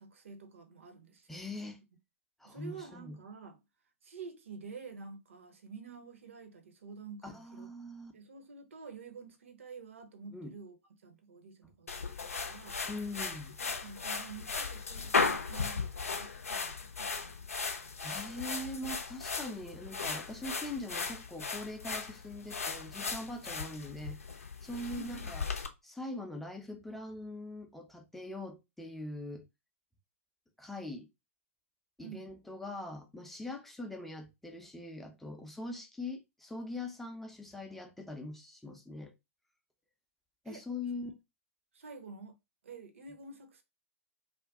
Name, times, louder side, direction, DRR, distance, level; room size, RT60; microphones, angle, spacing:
voice 1, 0.0-1.8 2.4-3.6 4.0-7.7 8.1-10.8 11.0-11.9 12.2-12.8 13.6-18.1 24.9-25.1 32.0-32.2 40.4-40.6 41.7-42.3 42.6-43.6, right 5 dB, 60° right, 0.7 m, -49 dB
voice 2, 1.3-1.8 2.4-3.2 7.2-8.1 10.3-10.5 12.8-13.6 18.0-24.2 24.6-25.5 25.8-29.4 30.6-31.1 32.0-39.1 40.4-41.1, left 2 dB, 5° left, 0.5 m, -42 dB
sound 1, 11.9-25.7, left 4 dB, 75° left, 0.5 m, -37 dB
2.5 x 2.2 x 3.5 m
figure-of-eight pair, 110°, 8 cm